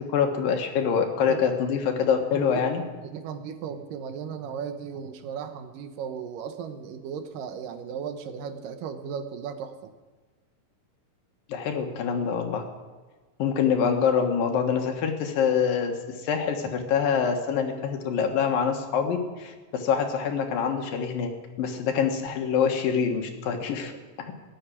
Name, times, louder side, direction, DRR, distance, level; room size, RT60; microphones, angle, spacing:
voice 1, 0.1-2.8 11.5-12.6 13.4-21.3 21.6-23.9, left 7 dB, 85° left, 4 dB, 3.3 m, -25 dB
voice 2, 3.0-9.9 23.8-24.0, right 7 dB, 75° right, 8 dB, 2.7 m, -36 dB
17.5 x 8.2 x 9.8 m, 1.3 s
omnidirectional pair, 4.0 m